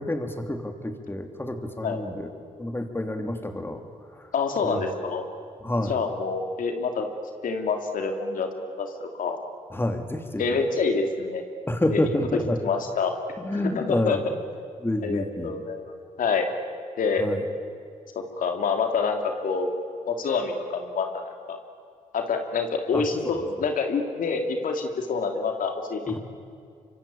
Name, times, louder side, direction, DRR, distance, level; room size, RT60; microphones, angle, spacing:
voice 1, 0.0-2.3 2.6-3.8 4.2-4.3 4.6-4.8 5.6-6.0 9.7-10.4 11.7-12.6 13.4-14.2 14.8-15.6 17.2-17.4 22.9-23.4 26.1-26.2, left 1 dB, 15° left, 6 dB, 3.1 m, -28 dB
voice 2, 4.3-5.2 5.9-7.1 7.4-9.4 10.4-11.4 11.9-12.1 12.6-13.1 13.5-14.2 15.0-15.8 16.2-16.5 17.0-17.2 18.4-19.7 20.1-21.6 22.1-26.2, left 5 dB, 80° left, 4 dB, 2.8 m, -27 dB
25.0 x 24.0 x 8.8 m, 2.3 s
cardioid pair, 70°, 14 cm